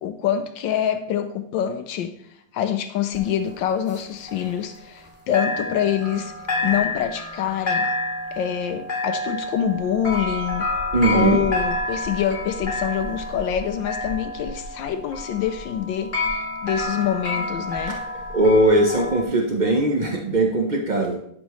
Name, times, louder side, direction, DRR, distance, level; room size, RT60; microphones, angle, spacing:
voice 1, 0.0-2.1 2.5-6.3 6.6-7.9 8.3-10.7 11.1-16.1 16.6-18.0, left 9 dB, 80° left, 1.3 m, -25 dB
sound 1, 3.1-5.1 5.3-19.2, left 2 dB, 25° left, 1.9 m, -29 dB
voice 2, 10.9-11.4 17.9-18.0 18.3-21.2, right 2 dB, 80° right, 0.4 m, -19 dB
11.5 x 5.2 x 3.1 m
omnidirectional pair, 2.1 m